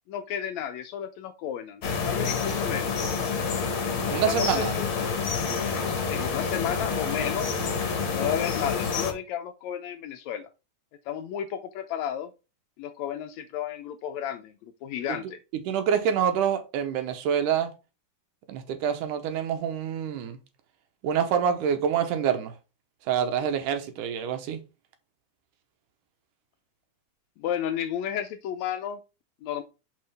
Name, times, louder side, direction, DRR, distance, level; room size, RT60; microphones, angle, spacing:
voice 1, 0.1-2.9 4.1-5.0 6.1-7.5 8.1-10.5 11.1-12.3 12.8-15.4 27.4-29.0 29.4-29.6, left 9 dB, 75° left, 1.7 m, -32 dB
sound 1, 1.8-9.1, left 5 dB, 55° left, 1.5 m, -28 dB
voice 2, 4.1-4.7 15.7-17.7 18.5-20.4 21.0-22.5 23.1-24.6, right 8 dB, 85° right, 2.5 m, -26 dB
6.6 x 5.5 x 3.4 m
omnidirectional pair, 3.6 m